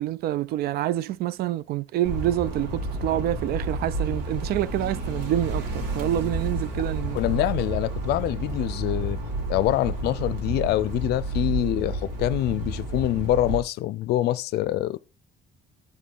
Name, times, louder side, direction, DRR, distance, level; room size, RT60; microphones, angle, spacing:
voice 1, 0.0-7.2, right 13 dB, 65° right, 0.4 m, -27 dB
sound 1, 2.0-13.6, right 2 dB, 90° right, 2.3 m, -30 dB
voice 2, 7.1-9.2 9.5-15.0, left 14 dB, 75° left, 0.5 m, -25 dB
8.5 x 3.6 x 5.4 m
cardioid pair, 110°, 17 cm